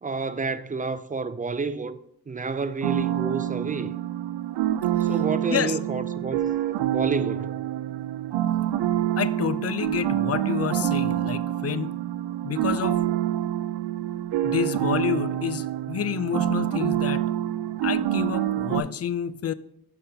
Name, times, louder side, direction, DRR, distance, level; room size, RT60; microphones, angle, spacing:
voice 1, 0.0-2.0 2.3-4.0 5.0-6.5 6.9-7.6, right 4 dB, 20° right, 0.4 m, -29 dB
sound 1, 2.8-18.8, right 12 dB, 85° right, 0.5 m, -26 dB
voice 2, 9.2-12.0 12.4-13.0 14.4-17.3 17.8-19.5, left 9 dB, 40° left, 0.4 m, -29 dB
6.5 x 5.6 x 3.9 m
cardioid pair, 65°, 40 cm